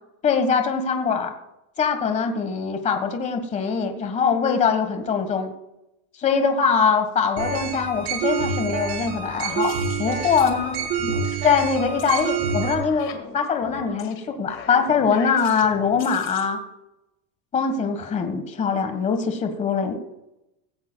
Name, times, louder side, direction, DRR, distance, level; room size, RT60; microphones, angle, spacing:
voice 1, 0.2-1.3 1.8-5.5 6.2-10.8 11.4-16.6 17.5-20.1, left 6 dB, 20° left, 6 dB, 1.3 m, -22 dB
sound 1, 7.4-12.7, right 6 dB, 50° right, 4.2 m, -27 dB
sound 2, 9.2-16.5, left 7 dB, 35° left, 1.7 m, -40 dB
16.5 x 16.0 x 2.2 m, 0.91 s
supercardioid pair, 155°, 35 cm